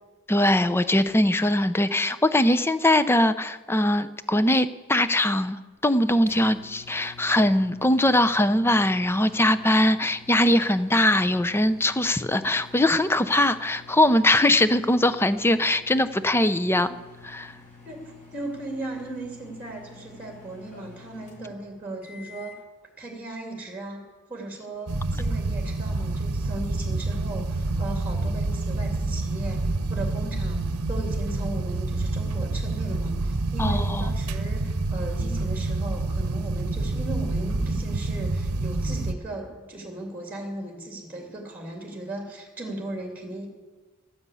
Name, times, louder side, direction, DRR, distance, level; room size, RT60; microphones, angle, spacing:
voice 1, 0.3-16.9 17.2-17.6 33.6-34.1, left 1 dB, 10° left, 13 dB, 0.5 m, -21 dB
sound 1, 5.7-22.6, left 4 dB, 35° left, 2.7 m, -49 dB
voice 2, 18.3-22.6 23.0-24.0 24.3-43.5, right 2 dB, 5° right, 0 dB, 2.5 m, -37 dB
sound 2, 24.9-39.1, right 2 dB, 80° right, 0.8 m, -27 dB
13.0 x 9.5 x 8.4 m, 1.3 s
head